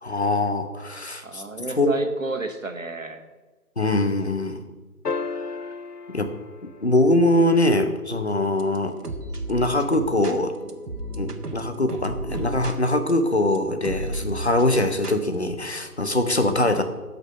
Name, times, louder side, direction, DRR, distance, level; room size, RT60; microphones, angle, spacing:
voice 1, 0.0-1.4 1.8-1.9 3.8-4.6 6.1-6.3 6.6-9.0 9.5-10.5 11.2-16.8, left 1 dB, 45° left, 8 dB, 1.0 m, -22 dB
voice 2, 1.2-3.2 16.4-16.6, right 3 dB, 55° right, 6 dB, 1.3 m, -32 dB
sound 1, 5.0-7.6 9.8-9.9, left 4 dB, 80° left, 0.9 m, -34 dB
sound 2, 8.2-15.4, right 1 dB, 90° right, 1.4 m, -34 dB
13.0 x 5.5 x 5.6 m, 1.3 s
figure-of-eight pair, 175°, 46 cm